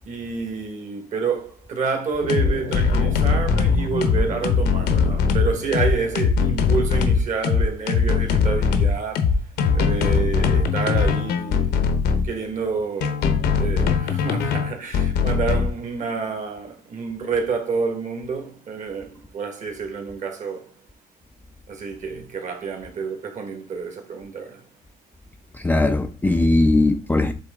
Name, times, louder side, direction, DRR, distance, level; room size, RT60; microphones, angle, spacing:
voice 1, 0.1-9.4 9.7-11.8 12.2-20.7 21.7-24.6, right 5 dB, 45° right, 1.8 m, -28 dB
sound 1, 2.2-12.3 13.0-15.7, left 5 dB, 75° left, 1.1 m, -20 dB
voice 2, 25.5-27.3, left 2 dB, 10° left, 0.5 m, -19 dB
7.8 x 3.4 x 3.7 m
cardioid pair, 110°, 17 cm